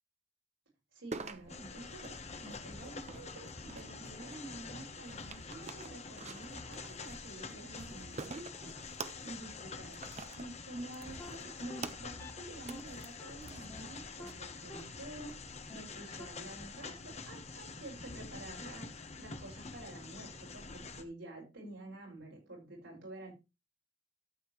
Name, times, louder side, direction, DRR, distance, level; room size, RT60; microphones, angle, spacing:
voice 1, 0.9-8.9 9.2-10.0 10.4-23.3, right 1 dB, 85° right, -2 dB, 5.9 m, -49 dB
sound 1, 1.1-14.3, right 4 dB, 35° right, 0.9 m, -49 dB
sound 2, 1.5-21.0, left 4 dB, 35° left, 1.2 m, -47 dB
sound 3, 10.8-10.9 11.2-11.3 11.7-11.8 12.2-12.3 12.7-12.8 13.2-13.3 13.7-13.8 14.2-14.3 14.7-14.8 15.2-15.3 15.7-15.8 16.2-16.3, left 1 dB, 15° left, 2.0 m, -48 dB
12.5 x 7.6 x 3.1 m, 0.26 s
head